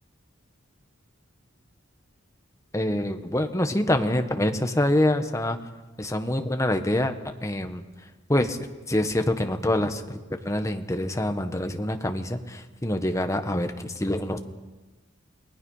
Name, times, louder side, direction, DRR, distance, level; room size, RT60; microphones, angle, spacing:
voice 1, 2.7-5.6 6.0-7.1 7.4-7.8 8.3-8.6 8.9-14.4, left 1 dB, 15° left, 6 dB, 1.4 m, -25 dB
29.0 x 20.0 x 5.7 m, 1.2 s
head